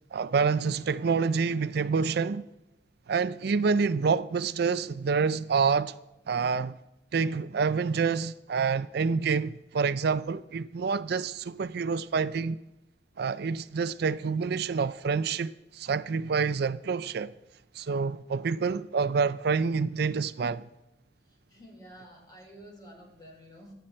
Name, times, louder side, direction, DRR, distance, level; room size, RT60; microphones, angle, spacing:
voice 1, 0.1-2.4 3.1-5.9 6.3-6.7 7.1-12.6 13.2-17.3 17.7-20.7, right 5 dB, 65° right, 0.4 m, -27 dB
voice 2, 21.2-23.7, equal, 25° left, 4.8 m, -50 dB
25.0 x 9.1 x 4.3 m
head